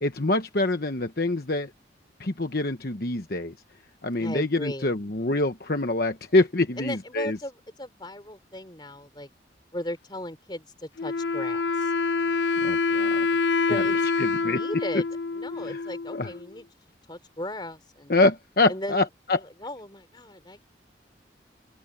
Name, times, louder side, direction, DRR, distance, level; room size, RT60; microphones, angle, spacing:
voice 1, 0.0-1.7 2.2-3.5 4.0-7.4 12.6-13.3 13.7-13.8 14.2-14.6 15.6-15.8 16.1-16.3 18.1-19.4, left 2 dB, 55° left, 1.1 m, -25 dB
voice 2, 4.2-5.0 6.8-9.3 9.7-11.9 13.7-14.1 14.4-15.1 15.3-16.7 17.1-18.1 18.7-19.1 19.3-20.7, left 1 dB, 25° left, 3.6 m, -37 dB
Wind instrument woodwind instrument, 11.0-16.5, left 4 dB, 70° left, 0.4 m, -26 dB
open air
head